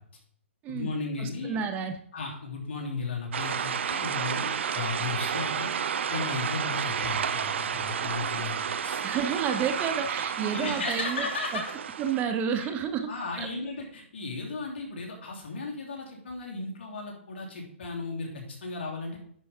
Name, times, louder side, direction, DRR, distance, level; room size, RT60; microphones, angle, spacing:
voice 1, 0.7-1.6 2.1-5.7 6.1-9.0 10.4-11.6 13.1-19.2, left 3 dB, 60° left, 0 dB, 2.8 m, -35 dB
voice 2, 1.2-2.0 9.0-11.3 11.5-11.6 12.0-13.1 13.4-13.5, right 7 dB, 20° right, 8 dB, 0.7 m, -30 dB
sound 1, 3.3-12.2, right 7 dB, 65° right, 0.6 m, -31 dB
10.5 x 5.0 x 3.5 m, 0.66 s
hypercardioid pair, 140°, 7 cm